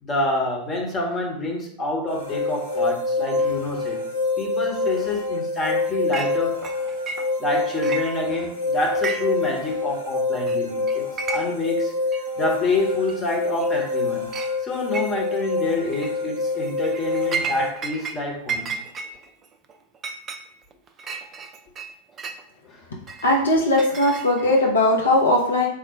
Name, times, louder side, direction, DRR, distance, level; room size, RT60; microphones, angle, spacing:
voice 1, 0.0-4.0 4.4-6.6 7.4-11.9 12.4-14.3 14.6-18.7 22.7-22.8 23.2-23.4 24.4-24.5, left 2 dB, 20° left, 0 dB, 0.9 m, -27 dB
sound 1, 2.1-17.7, left 3 dB, 90° left, 1.2 m, -26 dB
Chink clink, 6.1-6.3 6.6-7.5 7.8-8.5 8.9-9.5 9.7-9.8 10.5-10.6 10.9-11.7 12.1-12.2 13.1-13.2 13.6-13.9 14.3-14.5 14.9-15.4 15.8-16.1 16.6-18.2 18.5-22.4 23.1-24.6, right 5 dB, 25° right, 0.3 m, -33 dB
voice 2, 23.2-25.7, left 1 dB, 70° left, -1 dB, 0.6 m, -19 dB
3.6 x 2.0 x 4.3 m, 0.66 s
figure-of-eight pair, 90°, 0 cm